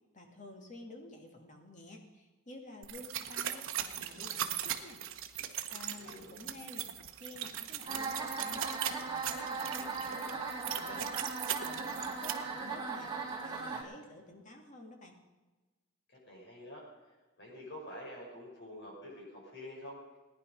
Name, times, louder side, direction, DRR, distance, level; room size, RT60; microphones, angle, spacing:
voice 1, 0.1-5.0 5.7-6.9 7.2-8.7 9.0-13.1 13.4-15.2, left 1 dB, 35° left, 3 dB, 2.2 m, -51 dB
sound 1, 2.8-12.3, right 10 dB, 60° right, 1.1 m, -39 dB
voice 2, 5.9-6.3 16.1-20.0, left 1 dB, 50° left, -3 dB, 6.2 m, -48 dB
sound 2, 7.9-13.8, right 4 dB, 20° right, 2.8 m, -38 dB
18.0 x 10.5 x 5.4 m, 1.2 s
head